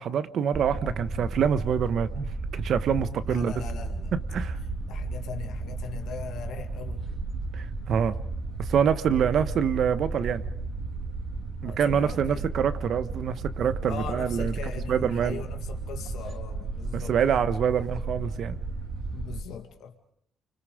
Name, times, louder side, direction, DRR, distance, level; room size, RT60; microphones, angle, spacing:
voice 1, 0.0-3.5 4.3-4.6 7.5-8.2 8.6-10.4 11.6-14.5 14.9-15.4 16.9-18.6, right 8 dB, 65° right, 13 dB, 1.2 m, -26 dB
sound 1, 0.5-19.4, right 3 dB, 50° right, 2.6 m, -34 dB
voice 2, 3.3-4.1 4.9-7.1 11.6-12.5 13.9-17.4 19.1-20.0, left 7 dB, 80° left, 4 dB, 2.1 m, -40 dB
29.5 x 25.0 x 5.1 m, 0.69 s
cardioid pair, 90°, 0 cm